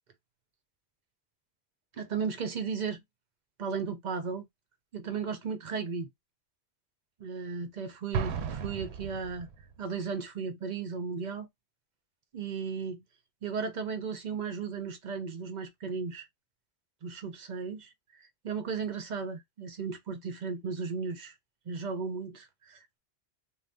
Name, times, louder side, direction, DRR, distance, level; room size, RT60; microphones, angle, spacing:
voice 1, 2.0-3.0 3.6-4.5 4.9-6.1 7.2-9.5 9.8-11.5 12.3-13.0 13.4-16.3 17.0-17.9 18.4-21.3 21.7-23.0, right 5 dB, 50° right, 0.6 m, -35 dB
Explosion, 8.1-9.7, right 6 dB, 80° right, 0.8 m, -35 dB
2.6 x 2.1 x 3.2 m
omnidirectional pair, 1.1 m